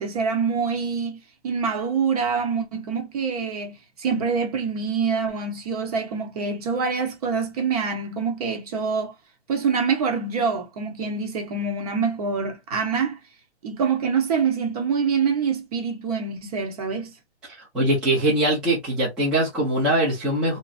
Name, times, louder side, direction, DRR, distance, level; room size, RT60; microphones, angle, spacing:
voice 1, 0.0-9.1 9.5-13.2 13.6-17.1, right 5 dB, 35° right, 0.9 m, -25 dB
voice 2, 17.7-20.6, right 1 dB, ahead, 0.6 m, -22 dB
3.1 x 2.6 x 2.4 m
hypercardioid pair, 160°, 34 cm